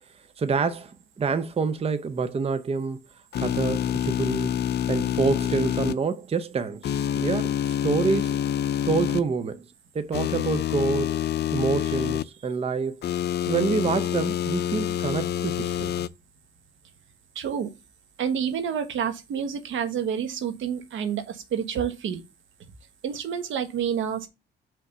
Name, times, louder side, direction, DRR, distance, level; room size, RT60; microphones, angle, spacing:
voice 1, 0.4-3.0 3.4-4.5 4.9-6.9 7.1-8.4 8.8-9.6 9.9-11.2 11.5-12.9 13.4-15.9, right 5 dB, 30° right, 0.6 m, -27 dB
sound 1, 3.3-5.9 6.8-9.2 10.1-12.2 13.0-16.1, left 10 dB, 55° left, 0.5 m, -27 dB
voice 2, 17.3-17.7 18.2-22.2 23.0-24.3, right 8 dB, 75° right, 1.3 m, -28 dB
5.5 x 3.6 x 5.5 m
cardioid pair, 90°, 20 cm